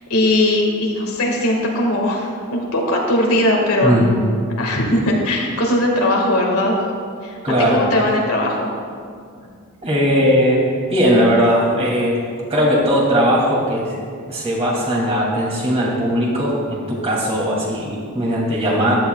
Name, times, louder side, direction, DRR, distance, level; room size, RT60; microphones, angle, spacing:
voice 1, 0.1-4.0 4.6-6.8 7.2-7.4 7.7-8.7, left 1 dB, 75° left, -1 dB, 1.9 m, -19 dB
voice 2, 3.8-4.1 7.4-7.9 9.8-10.6 10.9-12.2 12.5-14.0 14.3-19.0, equal, 30° right, -4 dB, 2.7 m, -18 dB
15.0 x 11.5 x 2.4 m, 2.2 s
head